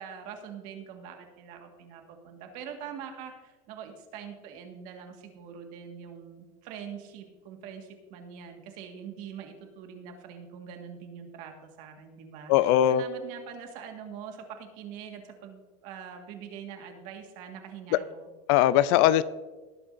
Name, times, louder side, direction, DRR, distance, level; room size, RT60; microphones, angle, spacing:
voice 1, 0.0-18.3, right 7 dB, 50° right, 4 dB, 1.8 m, -44 dB
voice 2, 12.5-13.0 18.5-19.2, left 12 dB, 60° left, 17 dB, 0.5 m, -20 dB
19.0 x 8.5 x 2.7 m, 1.3 s
supercardioid pair, 155°, 17 cm